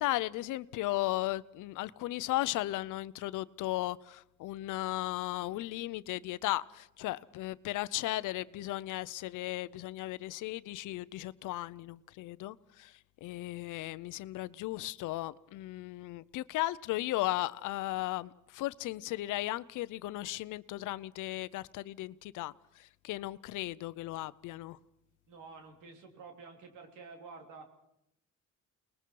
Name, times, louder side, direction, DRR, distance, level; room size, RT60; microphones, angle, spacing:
voice 1, 0.0-24.8, left 16 dB, 90° left, 0.7 m, -36 dB
voice 2, 25.3-27.7, right 4 dB, 90° right, 3.3 m, -50 dB
29.5 x 20.5 x 4.7 m
cardioid pair, 90°, 30 cm